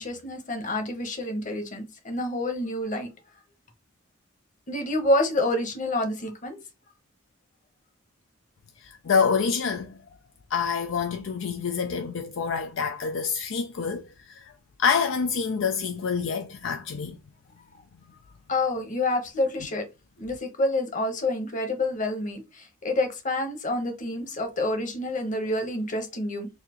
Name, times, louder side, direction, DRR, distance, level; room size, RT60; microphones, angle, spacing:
voice 1, 0.0-3.1 4.7-6.6 18.5-19.9 20.2-26.5, left 1 dB, 40° left, 1.0 m, -28 dB
voice 2, 8.8-10.0 10.5-14.5 14.8-17.2, left 6 dB, 65° left, 0.4 m, -27 dB
4.1 x 2.7 x 2.9 m
head